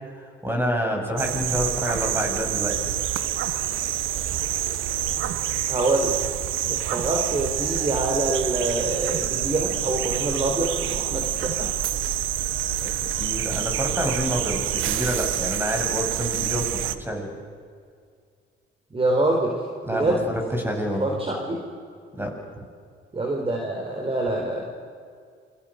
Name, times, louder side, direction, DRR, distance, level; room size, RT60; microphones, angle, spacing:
voice 1, 0.4-2.8 12.8-16.7 17.0-17.3 19.8-20.1 20.5-21.2 22.2-22.6, equal, 10° right, 1 dB, 7.4 m, -28 dB
sound 1, 1.2-16.9, right 12 dB, 85° right, 1.2 m, -27 dB
voice 2, 5.7-6.2 6.7-11.7 18.9-19.6 19.9-20.2 21.0-21.6 23.1-24.6, right 2 dB, 30° right, 1 dB, 4.1 m, -25 dB
28.5 x 24.0 x 6.6 m, 2.2 s
cardioid pair, 90°, 20 cm